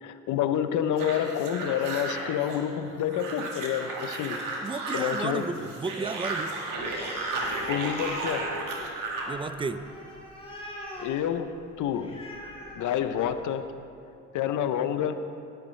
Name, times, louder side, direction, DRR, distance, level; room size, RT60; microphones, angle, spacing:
voice 1, 0.0-4.4 4.9-5.6 7.7-8.5 11.0-12.2 12.7-13.6 14.3-15.2, left 9 dB, 80° left, 10 dB, 0.6 m, -28 dB
sound 1, 1.0-9.4, right 3 dB, 90° right, 1.4 m, -34 dB
voice 2, 4.6-6.6 9.3-9.9, right 4 dB, 15° right, 11 dB, 0.4 m, -33 dB
Animal, 6.8-13.5, left 1 dB, 20° left, 1.8 m, -42 dB
11.5 x 10.5 x 3.2 m, 2.7 s
cardioid pair, 90°, 30 cm